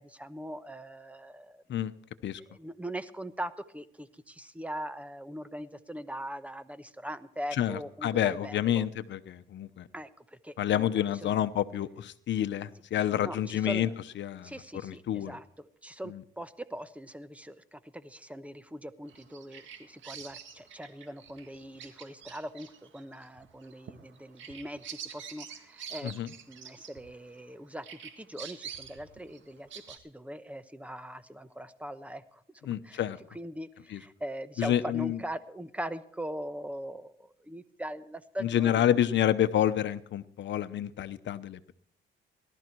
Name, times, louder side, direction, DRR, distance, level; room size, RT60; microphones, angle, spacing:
voice 1, 0.0-1.6 2.4-8.9 9.9-11.3 13.1-13.9 14.4-33.0 33.3-39.0, equal, 5° right, 12 dB, 1.0 m, -41 dB
voice 2, 7.6-9.9 10.6-13.9 14.2-14.5 14.8-15.3 16.1-16.2 26.0-26.3 32.7-33.2 33.9-34.0 34.6-35.2 38.4-41.7, left 11 dB, 65° left, 13 dB, 1.0 m, -28 dB
Bird vocalization bird call bird song, 19.1-27.5 27.8-30.0, right 8 dB, 75° right, 2.0 m, -46 dB
18.0 x 12.5 x 4.7 m, 0.64 s
cardioid pair, 90°, 20 cm